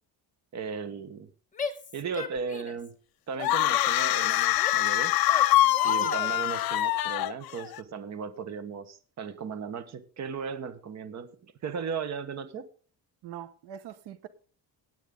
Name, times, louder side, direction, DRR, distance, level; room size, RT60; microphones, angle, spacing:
voice 1, 0.5-1.3 1.9-2.9 3.3-5.1 5.8-12.7, right 6 dB, 45° right, 1.3 m, -36 dB
Female speech woman speaking / Yell, 1.5-2.9 3.3-4.9 5.3-6.3, left 5 dB, 20° left, 1.4 m, -37 dB
sound 1, 3.4-7.8, left 14 dB, 65° left, 0.8 m, -24 dB
voice 2, 13.2-14.3, right 11 dB, 80° right, 1.1 m, -42 dB
17.0 x 9.2 x 3.8 m
cardioid pair, 175°, 39 cm